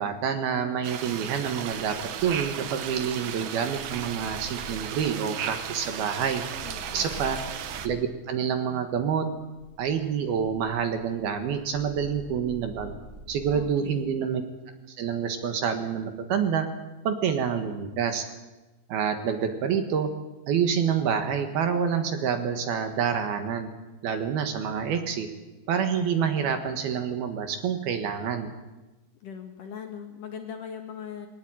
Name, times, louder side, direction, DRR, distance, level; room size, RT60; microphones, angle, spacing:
voice 1, 0.0-2.0 2.2-6.4 6.9-7.4 7.8-9.3 9.8-12.9 13.3-14.4 14.9-16.7 17.0-18.2 18.9-20.1 20.5-23.7 24.0-25.3 25.7-28.5, right 7 dB, 65° right, 7 dB, 3.1 m, -27 dB
sound 1, 0.8-7.9, right 9 dB, 85° right, 1.7 m, -35 dB
Purr, 1.9-8.1 8.8-14.0, right 1 dB, 10° right, 1.8 m, -47 dB
voice 2, 6.6-7.2 13.5-14.1 29.2-31.3, left 7 dB, 55° left, 4 dB, 2.7 m, -40 dB
21.5 x 18.5 x 9.0 m, 1.1 s
omnidirectional pair, 5.3 m